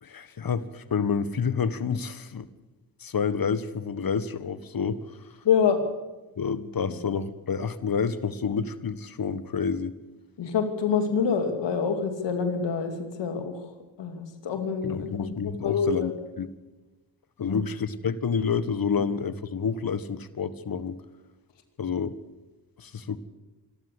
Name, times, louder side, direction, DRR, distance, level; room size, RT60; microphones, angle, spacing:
voice 1, 0.0-2.5 3.0-5.0 6.4-9.9 14.8-16.5 17.4-21.0 21.8-22.1 22.8-23.2, left 6 dB, 55° left, 14 dB, 1.6 m, -29 dB
voice 2, 5.4-5.8 6.9-7.0 10.4-13.7 14.0-15.4 15.6-16.1 17.4-17.6, left 6 dB, 90° left, 7 dB, 2.7 m, -26 dB
25.5 x 13.0 x 8.4 m, 1.1 s
cardioid pair, 50°, 42 cm